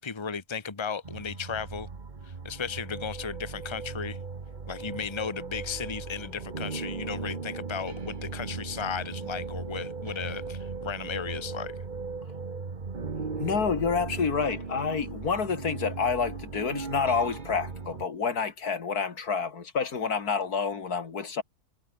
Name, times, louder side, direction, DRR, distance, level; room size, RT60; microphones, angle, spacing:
voice 1, 0.0-1.9 2.2-4.2 4.7-11.8, left 6 dB, 20° left, 1.3 m, -35 dB
sound 1, 1.0-18.1, right 4 dB, 30° right, 1.5 m, -37 dB
voice 2, 13.4-21.4, left 5 dB, 80° left, 2.6 m, -28 dB
omnidirectional pair, 1.6 m